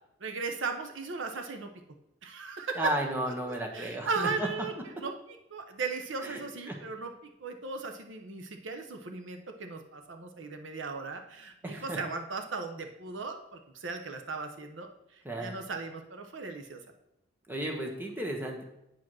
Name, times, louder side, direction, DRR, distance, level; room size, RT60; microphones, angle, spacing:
voice 1, 0.2-1.7 2.2-2.8 3.3-4.7 5.0-5.1 5.5-7.1 7.4-16.8, right 4 dB, 75° right, 5 dB, 0.9 m, -37 dB
voice 2, 2.8-4.5 6.2-6.4 6.7-6.8 11.6-12.0 15.2-15.5 17.5-18.6, right 1 dB, 10° right, 1 dB, 1.3 m, -33 dB
9.0 x 4.8 x 6.1 m, 0.83 s
head